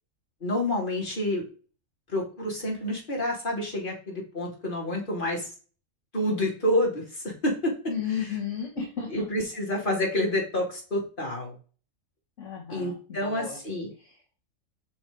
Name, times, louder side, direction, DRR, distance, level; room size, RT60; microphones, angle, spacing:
voice 1, 0.4-1.4 2.1-5.5 6.1-7.7 9.1-11.5 12.7-13.9, left 1 dB, 40° left, -2 dB, 3.0 m, -28 dB
voice 2, 7.9-9.3 12.4-13.6 14.0-14.2, left 7 dB, 65° left, -1 dB, 1.8 m, -34 dB
6.1 x 4.9 x 5.2 m, 0.37 s
omnidirectional pair, 1.4 m